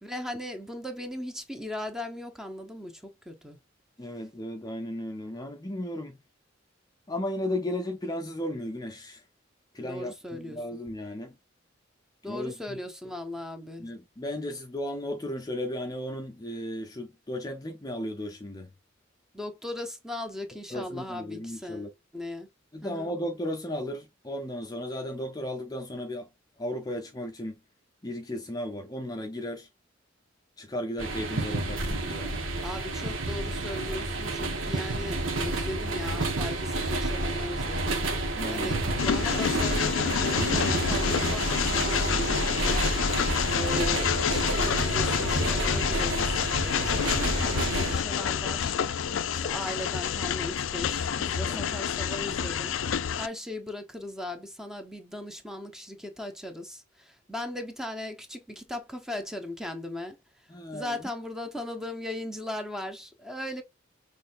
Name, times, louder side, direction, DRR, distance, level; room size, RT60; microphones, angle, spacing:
voice 1, 0.0-3.6 9.8-10.6 12.2-13.9 19.3-22.5 22.8-23.1 32.6-38.1 38.5-42.9 43.5-48.8 49.3-52.8 53.1-63.6, left 1 dB, 5° right, 0.9 m, -38 dB
voice 2, 4.0-6.2 7.1-9.2 9.7-11.3 12.3-12.8 13.8-18.7 20.7-21.9 22.7-26.3 26.6-27.6 28.0-29.7 30.6-32.4 38.4-38.8 51.5-51.6 60.5-61.0, left 1 dB, 20° left, 0.6 m, -35 dB
sound 1, 31.0-47.9, right 2 dB, 80° right, 1.2 m, -29 dB
Train, 39.0-53.3, left 8 dB, 80° left, 0.4 m, -28 dB
6.1 x 3.2 x 2.5 m
head